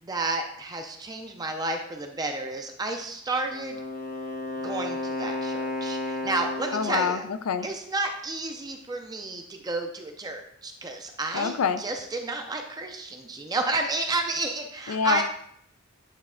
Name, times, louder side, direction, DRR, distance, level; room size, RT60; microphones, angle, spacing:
voice 1, 0.0-3.8 4.6-7.2 7.6-15.2, right 2 dB, 20° right, 4 dB, 0.4 m, -31 dB
Wind instrument woodwind instrument, 3.4-7.3, left 2 dB, 50° left, 1.1 m, -33 dB
voice 2, 6.7-7.7 11.3-11.8 14.9-15.2, left 6 dB, 85° left, 11 dB, 0.4 m, -26 dB
8.2 x 3.2 x 3.7 m, 0.71 s
head